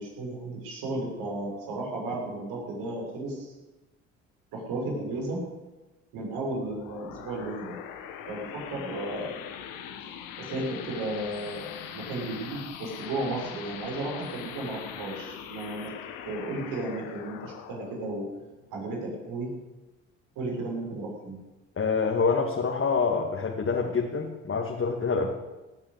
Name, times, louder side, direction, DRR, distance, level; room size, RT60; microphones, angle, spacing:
voice 1, 0.0-3.5 4.5-5.4 6.1-7.8 8.3-9.3 10.4-11.7 11.9-15.9 16.2-18.2 18.7-19.5 20.3-21.4, right 2 dB, 75° right, -1 dB, 6.8 m, -34 dB
sound 1, 6.5-19.6, left 9 dB, 70° left, 1.9 m, -42 dB
voice 2, 21.8-25.3, left 5 dB, 35° left, 0 dB, 2.4 m, -26 dB
17.0 x 8.8 x 8.3 m, 1.1 s
hypercardioid pair, 60°, 35 cm